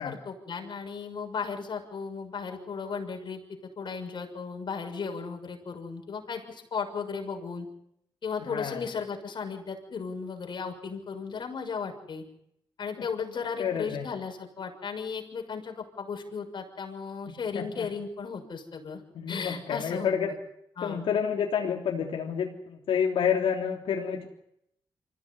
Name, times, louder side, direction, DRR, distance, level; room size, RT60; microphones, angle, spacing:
voice 1, 0.0-3.4 3.8-7.7 8.2-12.2 12.8-19.0 19.3-20.1 20.8-21.0, left 5 dB, 60° left, 3 dB, 6.5 m, -35 dB
voice 2, 8.5-8.8 13.6-14.0 17.5-17.9 19.1-20.3 20.8-24.3, left 7 dB, 80° left, 0 dB, 3.3 m, -29 dB
25.5 x 16.0 x 9.9 m, 0.76 s
cardioid pair, 70°, 9 cm